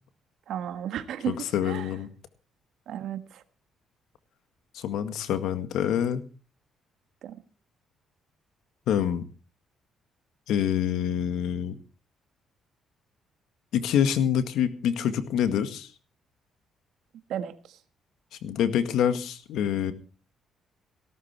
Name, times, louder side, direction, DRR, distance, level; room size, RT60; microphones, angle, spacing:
voice 1, 0.5-1.9 2.9-3.4 7.2-7.3 17.3-17.5, right 9 dB, 75° right, 1.5 m, -33 dB
voice 2, 1.3-2.1 4.7-6.2 8.9-9.2 10.5-11.8 13.7-15.9 18.4-19.9, left 9 dB, 80° left, 1.8 m, -26 dB
17.5 x 12.5 x 4.5 m
cardioid pair, 110°, 0 cm